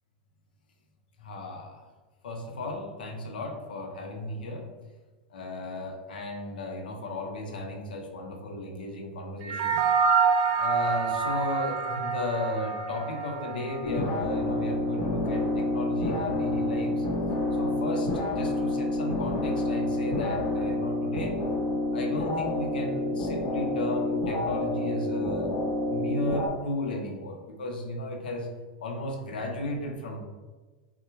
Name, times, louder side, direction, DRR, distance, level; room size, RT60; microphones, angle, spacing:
voice 1, 1.2-1.8 2.2-4.7 5.3-9.8 10.6-17.1 17.6-21.4 21.9-25.6 25.9-28.5 28.8-30.2, left 1 dB, 90° left, 2 dB, 0.9 m, -35 dB
sound 1, 9.4-14.1, right 5 dB, 55° right, 0.4 m, -27 dB
sound 2, 13.8-26.5, left 2 dB, 50° left, 1.2 m, -28 dB
5.7 x 2.4 x 3.0 m, 1.3 s
hypercardioid pair, 120°, 5 cm